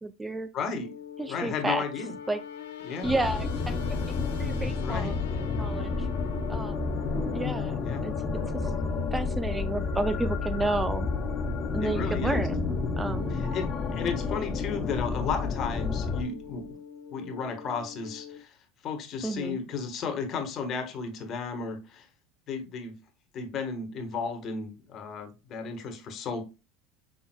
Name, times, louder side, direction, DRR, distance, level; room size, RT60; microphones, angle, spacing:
voice 1, 0.0-0.5 1.2-1.8 2.3-2.4 3.0-3.7 4.4-5.2 5.5-6.1 6.5-7.1 7.3-8.1 9.1-11.1 11.7-12.6 13.0-13.4 19.2-19.6, right 2 dB, 15° right, 0.4 m, -31 dB
voice 2, 0.5-0.9 1.3-2.1 2.8-3.1 4.8-5.2 7.8-8.0 11.8-12.5 13.3-16.7 17.1-18.6 18.8-22.1 22.5-23.0 23.3-26.4, left 5 dB, 50° left, 1.3 m, -34 dB
sound 1, 0.7-18.4, left 10 dB, 90° left, 0.9 m, -43 dB
sound 2, 3.0-16.2, left 4 dB, 35° left, 0.9 m, -30 dB
sound 3, 7.1-16.7, right 1 dB, 70° right, 1.6 m, -44 dB
6.1 x 3.5 x 2.2 m
hypercardioid pair, 85°, 0 cm